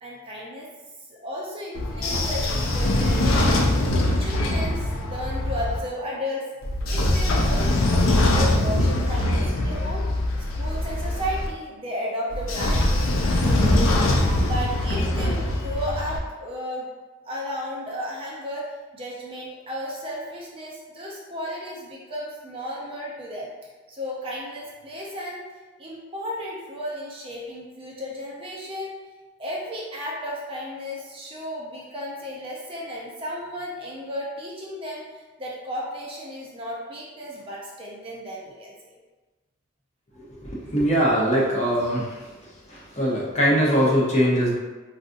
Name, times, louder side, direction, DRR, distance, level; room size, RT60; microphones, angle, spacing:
voice 1, 0.0-0.7 1.1-3.7 4.2-6.5 6.8-10.1 10.4-13.8 14.4-16.9 17.3-18.6 18.9-23.5 23.9-25.4 25.8-28.9 29.4-38.9, equal, 25° right, -3 dB, 0.5 m, -34 dB
Train / Sliding door, 1.8-5.8 6.6-11.5 12.3-16.2, left 1 dB, 75° left, 0.5 m, -22 dB
voice 2, 40.4-42.3 42.7-44.5, equal, 30° left, -4 dB, 0.6 m, -21 dB
3.8 x 2.5 x 2.5 m, 1.2 s
head